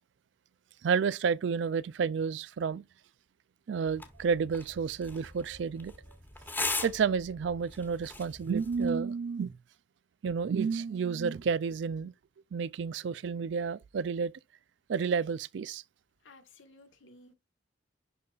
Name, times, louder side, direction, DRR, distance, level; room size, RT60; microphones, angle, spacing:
voice 1, 0.8-2.8 3.7-5.9 6.8-9.5 10.2-12.1 12.5-14.3 14.9-15.8, right 6 dB, 70° right, 0.4 m, -30 dB
sound 1, 3.9-8.9, left 3 dB, 10° left, 1.2 m, -39 dB
voice 2, 16.2-17.3, left 2 dB, 90° left, 1.5 m, -56 dB
11.0 x 3.9 x 2.4 m
head